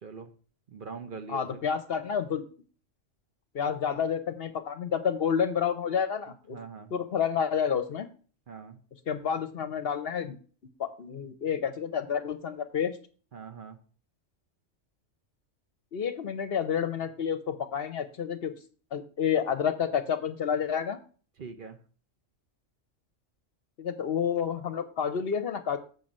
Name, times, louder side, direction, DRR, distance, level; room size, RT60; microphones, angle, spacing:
voice 1, 0.7-1.6 6.5-6.9 8.5-8.8 13.3-13.8 21.4-21.8, right 5 dB, 50° right, 8 dB, 0.9 m, -42 dB
voice 2, 1.3-2.4 3.5-6.6 6.9-8.1 9.1-10.4 10.8-13.0 15.9-18.6 18.9-21.0 23.8-25.8, left 7 dB, 60° left, 11 dB, 0.8 m, -29 dB
7.4 x 5.5 x 5.2 m, 0.41 s
omnidirectional pair, 1.3 m